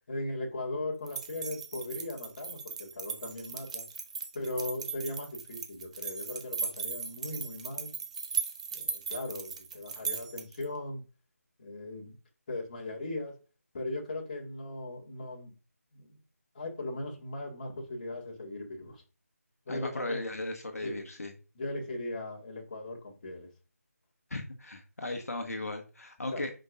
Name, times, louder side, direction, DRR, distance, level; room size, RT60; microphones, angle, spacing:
voice 1, 0.1-3.8 4.3-7.9 8.7-11.0 11.6-12.1 12.5-13.4 13.7-15.5 15.9-16.2 16.5-19.0 19.7-20.2 20.8-21.1 21.6-23.5 26.3-26.4, left 2 dB, 30° left, -1 dB, 2.1 m, -38 dB
sound 1, 1.1-10.6, right 6 dB, 25° right, 0.6 m, -38 dB
voice 2, 19.7-21.3 24.3-26.5, left 2 dB, 70° left, 4 dB, 1.3 m, -36 dB
10.0 x 5.3 x 2.6 m, 0.33 s
figure-of-eight pair, 160°, 9 cm